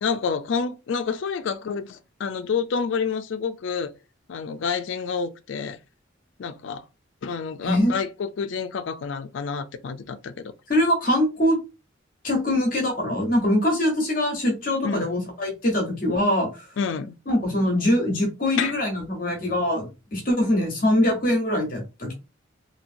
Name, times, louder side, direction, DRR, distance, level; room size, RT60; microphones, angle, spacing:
voice 1, 0.0-3.9 4.3-5.8 6.4-6.9 7.2-10.5 14.8-15.1 16.8-17.2 18.6-18.8, left 5 dB, 70° left, 0.4 m, -28 dB
voice 2, 7.6-7.9 10.7-11.6 12.2-16.5 17.3-22.1, left 1 dB, 45° left, 0.9 m, -23 dB
2.9 x 2.7 x 2.6 m
head